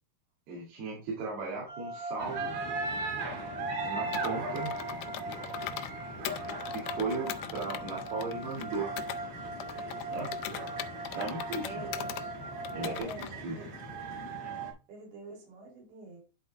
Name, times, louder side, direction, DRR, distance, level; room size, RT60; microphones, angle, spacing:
voice 1, 0.5-2.6 3.8-4.7 6.7-8.9 10.1-10.3 11.1-11.9 12.7-13.6, right 3 dB, 65° right, -3 dB, 3.8 m, -36 dB
sound 1, 1.7-13.0, right 2 dB, 25° right, 1.5 m, -40 dB
sound 2, 2.2-14.7, right 3 dB, 50° right, 3.3 m, -40 dB
Computer keyboard, 4.1-5.9 6.3-9.2 9.6-12.3 12.7-13.3, left 13 dB, 80° left, 2.3 m, -40 dB
voice 2, 11.6-12.1 12.8-13.7 14.9-16.2, right 2 dB, 90° right, -1 dB, 5.2 m, -45 dB
11.5 x 4.0 x 3.3 m, 0.32 s
omnidirectional pair, 4.8 m